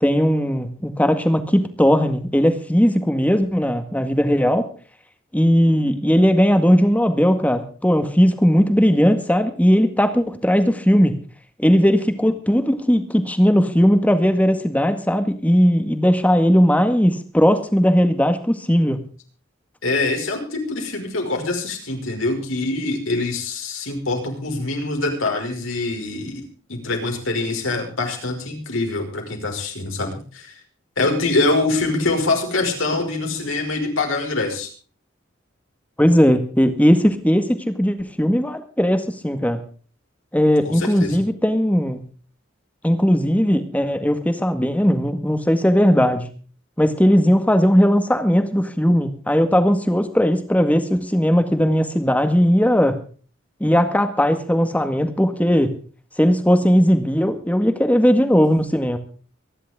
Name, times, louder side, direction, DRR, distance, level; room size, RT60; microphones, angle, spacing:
voice 1, 0.0-4.7 5.3-11.2 11.6-19.0 36.0-39.6 40.3-42.0 42.8-46.3 46.8-53.0 53.6-55.8 56.2-59.0, equal, 5° left, 8 dB, 1.8 m, -18 dB
voice 2, 19.8-30.5 31.0-34.7 40.7-41.2, left 2 dB, 75° left, 2 dB, 5.5 m, -24 dB
24.5 x 11.0 x 3.7 m, 0.39 s
head